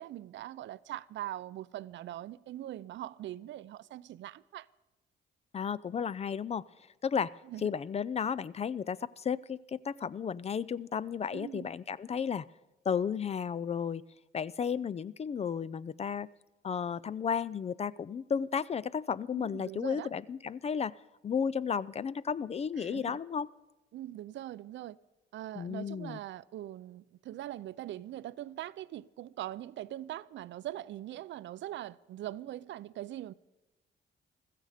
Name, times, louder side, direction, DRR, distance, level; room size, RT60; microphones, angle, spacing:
voice 1, 0.0-4.7 7.4-7.6 11.3-11.7 19.3-20.1 22.8-23.2 23.9-25.0 25.3-33.3, right 13 dB, 70° right, 0.5 m, -42 dB
voice 2, 5.5-6.6 7.0-12.4 12.9-14.0 14.3-16.3 16.6-20.9 21.2-23.5 25.6-26.2, left 7 dB, 30° left, 0.4 m, -33 dB
15.5 x 14.0 x 5.0 m
cardioid pair, 90°, 20 cm